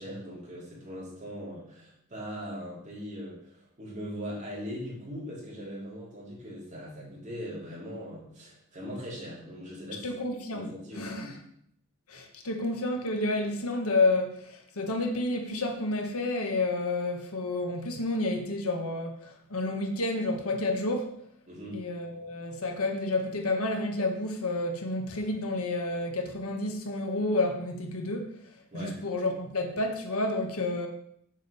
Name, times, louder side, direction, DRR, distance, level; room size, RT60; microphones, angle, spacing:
voice 1, 0.0-10.1 10.5-11.4 21.5-21.8 28.7-29.0, equal, 35° right, 3.8 m, -40 dB
voice 2, 10.0-10.7 11.0-11.3 12.1-21.1 21.7-28.3 28.7-30.9, left 2 dB, 75° left, 1.4 m, -30 dB
7.4 x 5.2 x 6.8 m
head